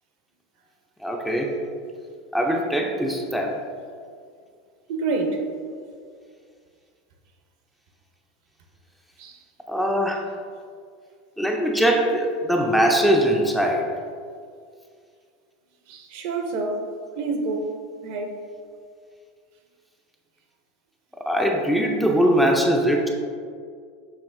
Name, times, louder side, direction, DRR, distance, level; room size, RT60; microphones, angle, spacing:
voice 1, 1.0-1.5 2.3-3.6 9.7-10.2 11.4-13.9 21.3-23.1, equal, ahead, 1 dB, 0.4 m, -21 dB
voice 2, 4.9-5.4 9.2-9.4 15.9-16.8 17.2-17.7 18.0-18.3, right 3 dB, 65° right, 3 dB, 0.6 m, -27 dB
6.6 x 2.8 x 2.6 m, 2.2 s
supercardioid pair, 125°, 0 cm